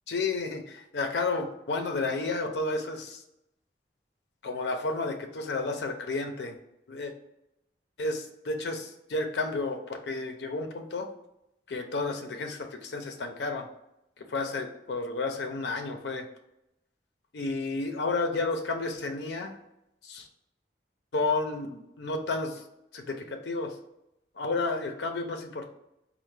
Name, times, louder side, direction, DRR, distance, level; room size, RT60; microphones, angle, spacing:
voice 1, 0.1-3.2 4.4-6.5 6.9-7.1 8.0-11.1 11.7-13.7 14.2-16.2 17.3-19.5 20.0-20.3 21.1-22.6 22.9-23.7 24.4-25.7, left 3 dB, 70° left, 5 dB, 0.5 m, -31 dB
4.2 x 2.1 x 3.2 m, 0.84 s
head